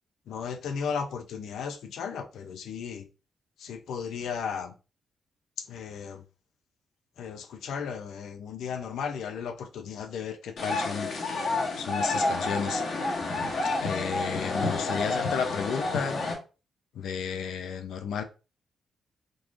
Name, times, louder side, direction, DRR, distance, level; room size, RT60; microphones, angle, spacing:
voice 1, 0.3-3.1 3.6-4.8 5.6-6.3 7.2-11.1 11.7-12.8 13.6-16.2 16.9-18.2, left 6 dB, 85° left, 0.6 m, -34 dB
sound 1, 10.6-16.3, left 3 dB, 65° left, 1.1 m, -29 dB
3.7 x 3.1 x 2.5 m
cardioid pair, 125°, 0 cm